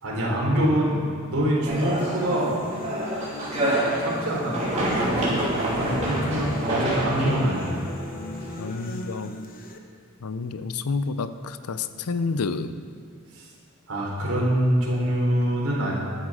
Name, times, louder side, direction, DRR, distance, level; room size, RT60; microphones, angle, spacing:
voice 1, 0.0-2.5 4.0-4.6 5.0-7.8 13.3-13.5 13.9-16.0, right 1 dB, 70° right, -4 dB, 3.5 m, -25 dB
sound 1, 1.7-8.7, right 1 dB, 30° right, 3.0 m, -27 dB
sound 2, 1.8-9.8, left 1 dB, 40° left, 0.9 m, -38 dB
voice 2, 7.3-7.6 8.6-9.3 10.2-12.7, left 4 dB, 85° left, 12 dB, 0.6 m, -29 dB
12.0 x 10.0 x 4.9 m, 2.3 s
head